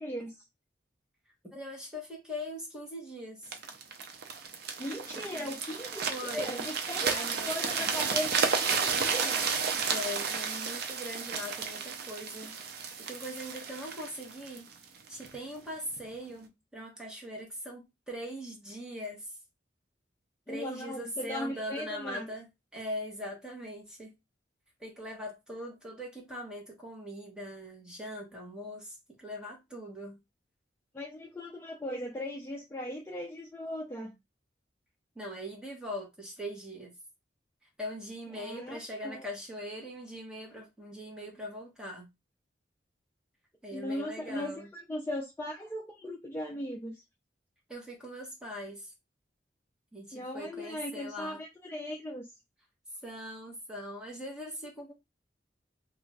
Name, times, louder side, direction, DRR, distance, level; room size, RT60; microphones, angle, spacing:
voice 1, 0.0-0.3 4.8-9.4 20.5-22.3 30.9-34.1 38.3-39.2 43.7-47.0 50.1-52.3, left 1 dB, 15° left, 0.4 m, -38 dB
voice 2, 1.5-3.6 5.1-5.5 6.1-6.6 7.0-7.5 9.9-14.7 15.1-19.4 20.5-22.5 22.7-24.1 24.8-30.2 35.1-36.9 37.8-42.1 43.6-44.7 47.7-48.9 49.9-51.4 53.0-54.9, equal, 5° right, 1.0 m, -41 dB
sound 1, 3.5-15.4 16.0-16.1, right 5 dB, 60° right, 0.5 m, -32 dB
2.4 x 2.4 x 3.2 m
head